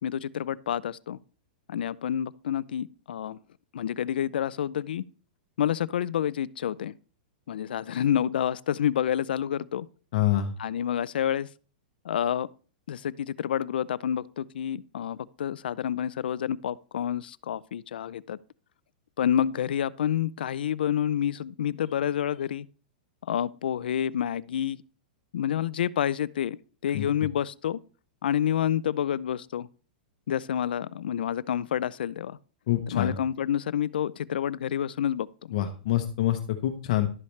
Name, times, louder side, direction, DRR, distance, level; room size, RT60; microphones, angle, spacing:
voice 1, 0.0-1.2 1.7-3.4 3.7-5.0 5.6-7.0 7.5-9.9 10.6-11.5 12.0-12.5 12.9-18.4 19.2-22.7 23.3-24.8 25.3-26.6 26.8-27.8 28.2-29.7 30.3-32.4 32.9-35.5, left 10 dB, 80° left, 0.5 m, -28 dB
voice 2, 10.1-10.5 26.9-27.1 32.7-33.1 35.5-37.1, left 12 dB, 45° left, 0.9 m, -26 dB
12.0 x 8.5 x 3.3 m
supercardioid pair, 175°, 5 cm